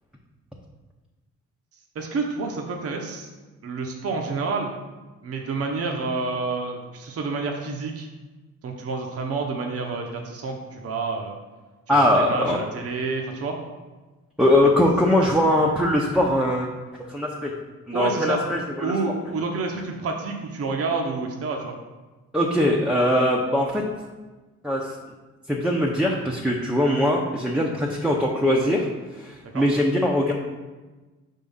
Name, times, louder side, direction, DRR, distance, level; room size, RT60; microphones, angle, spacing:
voice 1, 1.9-3.3 3.6-4.7 5.2-8.1 8.6-11.3 11.9-13.6 15.2-15.4 17.9-18.4 18.8-21.8 29.4-29.6, right 3 dB, 50° right, 2 dB, 0.8 m, -29 dB
voice 2, 11.9-12.6 14.4-16.7 17.1-17.5 17.9-18.9 22.3-23.8 24.6-25.0 25.5-30.3, left 1 dB, 5° right, -3 dB, 0.7 m, -21 dB
5.3 x 3.7 x 5.4 m, 1.2 s
cardioid pair, 90°, 30 cm